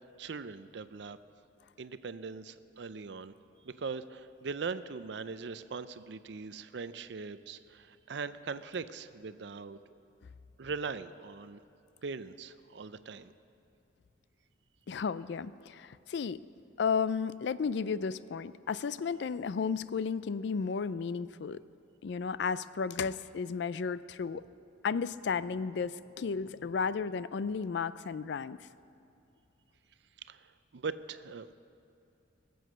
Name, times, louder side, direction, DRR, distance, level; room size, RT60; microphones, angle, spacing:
voice 1, 0.2-1.2 1.8-3.3 3.6-9.8 10.6-11.6 12.0-13.3 30.3-30.5 30.7-31.6, right 4 dB, 65° right, 13 dB, 0.5 m, -40 dB
voice 2, 14.9-16.4 16.8-21.6 22.0-24.4 24.8-28.6, left 5 dB, 65° left, 16 dB, 0.4 m, -33 dB
20.5 x 7.9 x 6.5 m, 2.6 s
head